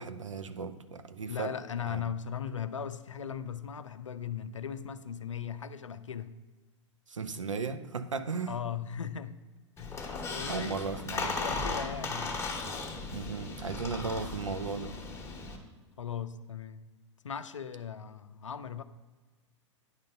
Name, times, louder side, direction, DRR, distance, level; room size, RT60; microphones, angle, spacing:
voice 1, 0.0-1.5 1.8-2.0 7.1-8.6 10.5-11.3 13.1-14.9, right 5 dB, 80° right, 0.6 m, -36 dB
voice 2, 1.3-6.3 8.5-9.4 9.8-12.4 16.0-16.9 17.2-18.8, left 8 dB, 75° left, 0.5 m, -38 dB
Squeak, 9.8-15.6, left 3 dB, 15° left, 1.2 m, -36 dB
9.6 x 3.8 x 5.6 m
figure-of-eight pair, 95°, 16 cm